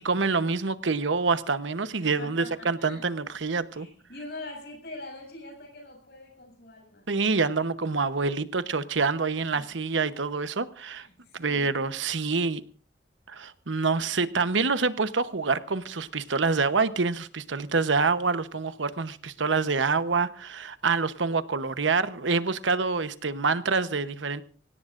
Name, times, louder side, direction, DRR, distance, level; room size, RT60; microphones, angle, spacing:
voice 1, 0.0-3.9 7.1-11.1 11.3-12.6 13.3-24.4, right 4 dB, 90° right, 13 dB, 1.0 m, -26 dB
voice 2, 2.2-3.0 3.7-7.1 9.5-9.7 10.8-11.8 12.4-12.5, left 2 dB, 60° left, 2 dB, 7.4 m, -44 dB
24.5 x 17.5 x 2.5 m, 0.40 s
head